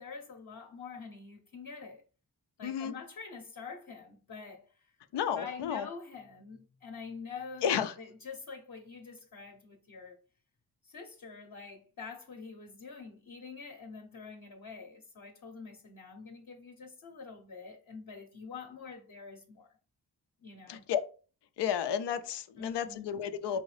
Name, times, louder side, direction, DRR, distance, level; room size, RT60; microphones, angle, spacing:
voice 1, 0.0-2.0 2.6-4.9 5.3-10.2 10.8-19.7 20.4-20.9 22.6-23.2, left 5 dB, 50° left, 0.8 m, -46 dB
voice 2, 2.6-2.9 5.1-5.9 7.6-7.9 20.7-21.0 21.6-23.6, left 8 dB, 85° left, 0.5 m, -32 dB
4.6 x 2.7 x 3.3 m
cardioid pair, 55°, 40 cm